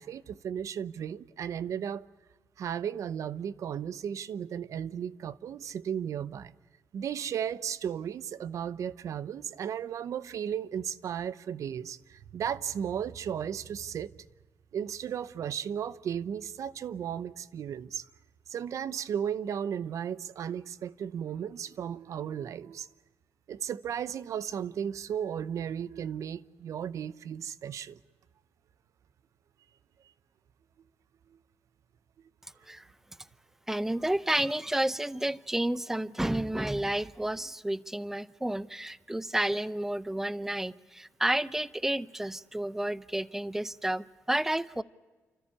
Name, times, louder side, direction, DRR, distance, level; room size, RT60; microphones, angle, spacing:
voice 1, 0.0-2.1 2.6-6.5 6.9-14.1 14.7-18.1 18.5-22.9 23.5-28.0, right 8 dB, 75° right, 0.7 m, -35 dB
voice 2, 33.7-44.8, right 1 dB, 5° right, 0.6 m, -31 dB
29.5 x 13.5 x 9.9 m
cardioid pair, 110°, 5 cm